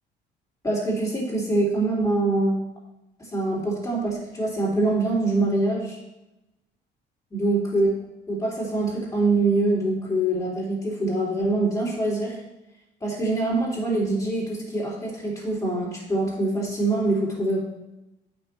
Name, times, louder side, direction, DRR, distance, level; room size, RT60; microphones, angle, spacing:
voice 1, 0.6-2.6 3.2-6.0 7.3-7.9 8.3-12.4 13.0-17.6, right 2 dB, 20° left, -5 dB, 3.4 m, -24 dB
8.4 x 6.2 x 4.4 m, 0.95 s
cardioid pair, 95°, 19 cm